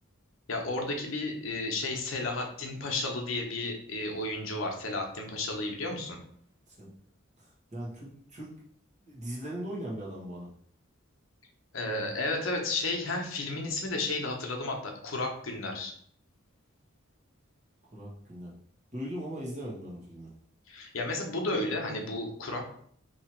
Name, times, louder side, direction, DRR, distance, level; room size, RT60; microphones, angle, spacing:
voice 1, 0.5-6.2 11.7-15.9 20.7-22.7, left 2 dB, 70° left, 2 dB, 0.9 m, -33 dB
voice 2, 7.4-8.5 9.1-10.5 17.9-18.5 18.9-20.3, equal, 35° right, -4 dB, 1.2 m, -39 dB
3.0 x 2.8 x 4.4 m, 0.62 s
head